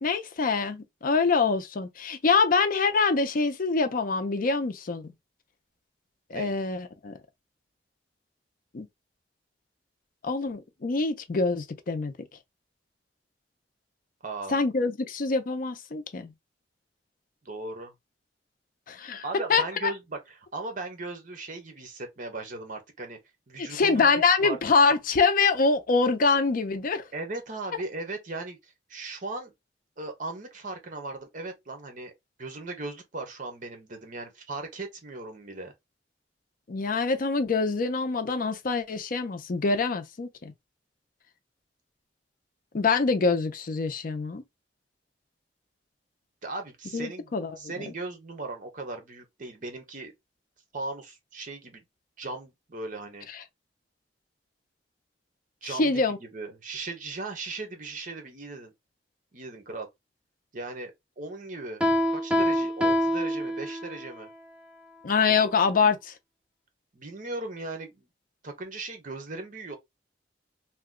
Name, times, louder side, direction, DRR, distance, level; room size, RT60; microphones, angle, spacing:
voice 1, 0.0-5.1 6.3-7.1 8.7-8.9 10.2-12.1 14.5-16.3 18.9-19.2 19.5-19.9 23.6-27.1 36.7-40.5 42.7-44.4 46.9-47.5 53.3-53.4 55.6-56.2 65.0-66.1, left 4 dB, 50° left, 0.5 m, -25 dB
voice 2, 14.2-14.6 17.4-17.9 19.2-23.2 23.5-24.1 24.4-24.6 27.1-29.5 30.0-32.1 32.4-35.7 46.4-50.1 50.7-51.8 52.2-53.3 55.6-58.7 59.3-59.9 60.5-61.8 62.1-64.3 66.9-68.1 68.4-69.8, right 3 dB, 50° right, 0.9 m, -38 dB
Piano, 61.8-64.1, equal, 5° right, 0.5 m, -25 dB
2.9 x 2.2 x 3.6 m
head